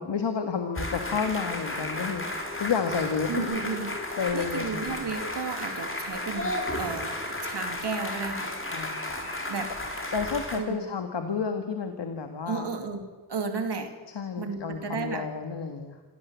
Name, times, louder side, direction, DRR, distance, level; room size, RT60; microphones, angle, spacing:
voice 1, 0.0-3.6 4.2-5.0 8.7-9.0 10.1-12.7 14.2-15.9, left 6 dB, 80° left, 6 dB, 1.8 m, -31 dB
sound 1, 0.7-10.6, left 1 dB, 30° left, 4.4 m, -33 dB
voice 2, 3.3-3.9 4.3-7.1 7.4-8.5 9.5-9.7 10.5-10.8 12.5-13.0 13.3-13.9 14.4-15.3, right 5 dB, 75° right, 5 dB, 2.7 m, -33 dB
26.5 x 17.0 x 8.3 m, 1.4 s
cardioid pair, 50°, 42 cm